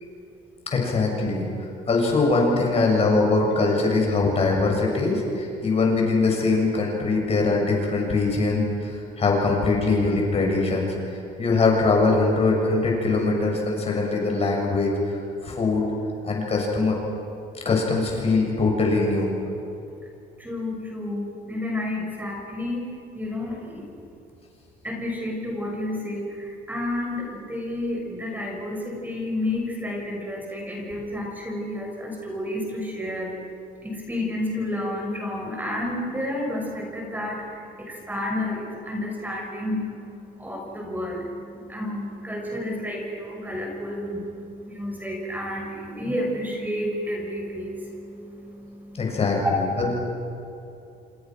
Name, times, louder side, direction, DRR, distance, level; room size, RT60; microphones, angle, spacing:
voice 1, 0.7-15.9 16.2-17.0 17.6-19.3 48.9-50.0, left 3 dB, 35° left, 0 dB, 7.3 m, -22 dB
voice 2, 20.4-22.8 23.1-23.9 24.8-33.3 33.8-39.8 40.4-41.2 41.7-44.2 44.7-47.8 49.2-49.5, left 1 dB, 10° right, 0 dB, 6.4 m, -30 dB
28.0 x 27.0 x 6.3 m, 2.7 s
cardioid pair, 110°, 17 cm